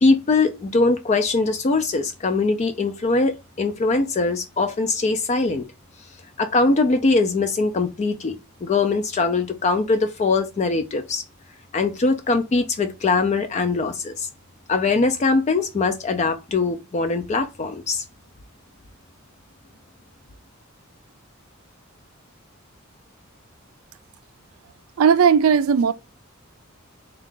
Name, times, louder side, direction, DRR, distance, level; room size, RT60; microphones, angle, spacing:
voice 1, 0.0-5.6 6.4-11.2 11.7-14.3 14.7-18.0, left 3 dB, 35° left, 0.4 m, -22 dB
voice 2, 25.0-25.9, right 7 dB, 85° right, 0.4 m, -16 dB
3.6 x 2.3 x 3.7 m
head